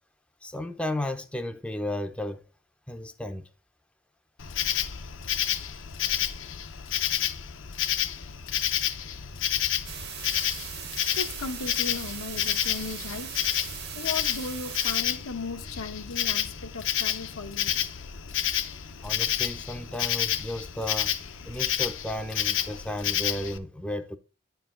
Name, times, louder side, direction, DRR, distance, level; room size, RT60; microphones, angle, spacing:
voice 1, 0.4-2.4 2.9-3.5 19.0-21.1 21.5-24.2, left 1 dB, 5° left, 0.4 m, -34 dB
Insect, 4.4-23.6, left 10 dB, 60° left, 0.6 m, -30 dB
sound 1, 9.8-15.0, right 11 dB, 50° right, 0.7 m, -39 dB
voice 2, 10.8-13.4 13.9-17.7 18.8-19.1, left 3 dB, 90° left, 1.2 m, -37 dB
9.7 x 4.6 x 3.6 m
head